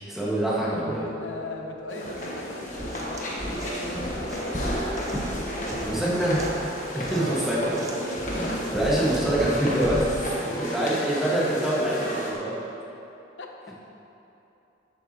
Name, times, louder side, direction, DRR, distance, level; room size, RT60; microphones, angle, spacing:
voice 1, 0.1-1.1 5.9-6.4 6.9-7.9 8.4-12.6, right 1 dB, ahead, -8 dB, 1.8 m, -26 dB
Harp, 0.8-10.0 10.8-10.9 11.4-11.5, left 1 dB, 15° left, 1.5 m, -46 dB
voice 2, 1.2-2.7 2.9-4.6 10.9-11.3 13.4-13.7, left 2 dB, 80° left, 2 dB, 0.8 m, -40 dB
sound 1, 1.9-12.3, equal, 40° left, 1.3 m, -32 dB
sound 2, 2.1-2.3 2.7-10.2, right 1 dB, 15° right, 0.8 m, -36 dB
13.0 x 8.3 x 3.0 m, 3.0 s
head